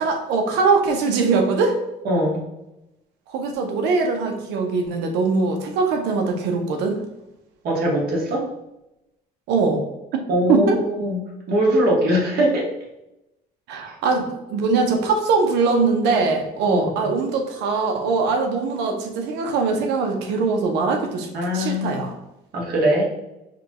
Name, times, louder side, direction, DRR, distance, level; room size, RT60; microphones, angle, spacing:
voice 1, 0.0-1.7 3.3-7.0 9.5-9.8 10.5-10.8 13.7-21.3 21.5-22.1, right 4 dB, 85° right, 3 dB, 0.6 m, -21 dB
voice 2, 2.0-2.4 7.6-8.5 10.3-11.2 11.5-12.7 16.6-17.1 21.3-21.9 22.5-23.0, equal, 65° right, -2 dB, 1.3 m, -21 dB
5.0 x 2.3 x 2.9 m, 0.91 s
cardioid pair, 110°, 17 cm